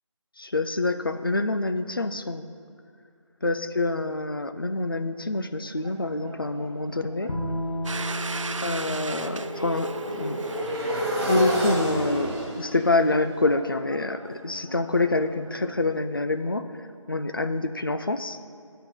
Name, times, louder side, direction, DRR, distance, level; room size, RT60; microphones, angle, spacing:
voice 1, 0.4-2.5 3.4-7.3 8.6-10.5 11.2-18.4, left 2 dB, 45° left, 9 dB, 0.4 m, -26 dB
Motorcycle, 5.8-15.7, equal, 45° right, 2.0 m, -32 dB
Bowed string instrument, 7.3-10.6, left 1 dB, 80° left, 1.5 m, -34 dB
Domestic sounds home sounds, 7.8-12.5, right 4 dB, 65° right, 0.5 m, -37 dB
11.0 x 4.5 x 7.9 m, 2.3 s
figure-of-eight pair, 175°, 17 cm